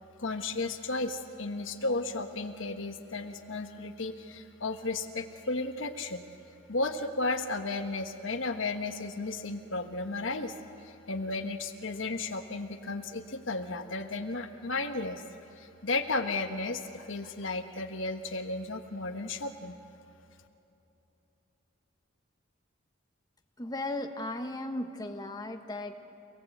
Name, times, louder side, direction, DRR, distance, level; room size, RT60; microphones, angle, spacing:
voice 1, 0.2-6.2 6.7-10.5 10.8-15.2 15.6-19.8, left 3 dB, 65° left, 6 dB, 1.3 m, -34 dB
voice 2, 23.6-25.9, left 1 dB, 20° left, 5 dB, 1.2 m, -36 dB
27.5 x 18.0 x 8.0 m, 3.0 s
head